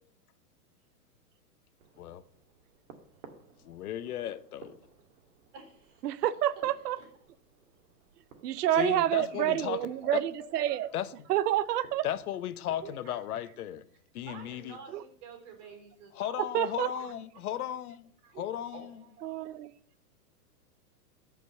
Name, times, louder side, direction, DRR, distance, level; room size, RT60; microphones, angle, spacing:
sound 1, 1.8-13.0, right 6 dB, 55° right, 1.9 m, -58 dB
voice 1, 3.6-4.8 8.7-10.2 10.9-11.3 12.0-13.8 14.1-14.8 16.1-19.0, left 11 dB, 65° left, 1.0 m, -36 dB
voice 2, 5.5-6.2 7.0-7.1 8.7-8.8 9.2-10.1 10.7-10.9 11.8-11.9 14.3-17.1 18.2-18.3 18.7-19.6, right 5 dB, 30° right, 4.3 m, -50 dB
voice 3, 6.0-7.0 8.4-10.9 11.3-12.1 14.9-15.0 16.5-16.9 18.3-18.4 19.2-19.7, right 12 dB, 75° right, 0.8 m, -28 dB
14.0 x 5.3 x 6.8 m
hypercardioid pair, 160°, 48 cm